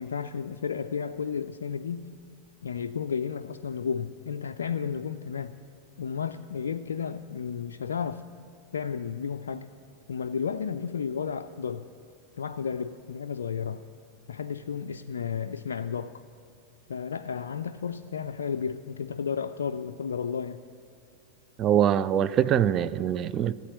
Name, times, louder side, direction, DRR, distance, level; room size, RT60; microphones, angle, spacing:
voice 1, 0.0-2.1 2.6-5.6 6.0-8.2 8.7-9.7 10.1-11.9 12.4-13.8 14.3-16.2 16.9-20.6, left 6 dB, 65° left, 6 dB, 0.3 m, -32 dB
voice 2, 21.6-23.5, right 9 dB, 30° right, 15 dB, 0.4 m, -23 dB
14.0 x 8.3 x 8.6 m, 2.3 s
figure-of-eight pair, 90°, 0 cm